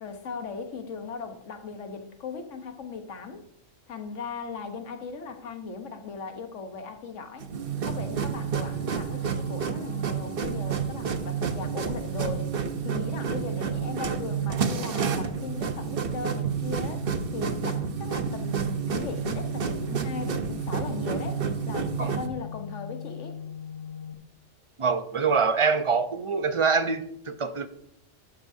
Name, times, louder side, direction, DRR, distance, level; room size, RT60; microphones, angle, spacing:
voice 1, 0.0-3.4 3.9-7.5 7.8-12.5 12.8-17.1 17.3-23.4, left 5 dB, 85° left, 1.4 m, -38 dB
sound 1, 7.4-22.3, right 7 dB, 55° right, 1.0 m, -30 dB
sound 2, 8.1-24.1, left 7 dB, 60° left, 1.2 m, -42 dB
voice 2, 24.8-27.7, right 5 dB, 35° right, 0.5 m, -25 dB
11.5 x 11.0 x 2.7 m
omnidirectional pair, 1.2 m